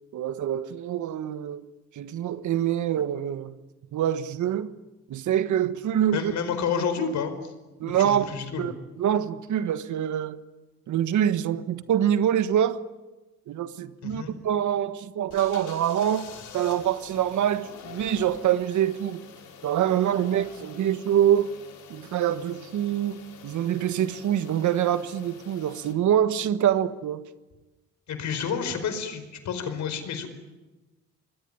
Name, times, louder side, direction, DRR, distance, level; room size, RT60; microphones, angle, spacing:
voice 1, 0.1-1.6 1.9-3.5 3.9-4.7 5.1-6.3 7.8-8.3 8.6-10.4 10.9-12.8 13.5-19.2 19.6-21.5 21.9-27.2, right 10 dB, 75° right, 1.5 m, -25 dB
voice 2, 6.1-7.5 7.9-8.7 14.0-14.3 28.1-30.3, left 6 dB, 70° left, 4.8 m, -30 dB
sound 1, 15.3-25.9, left 7 dB, 85° left, 5.9 m, -46 dB
26.5 x 21.0 x 9.9 m
cardioid pair, 90°, 30 cm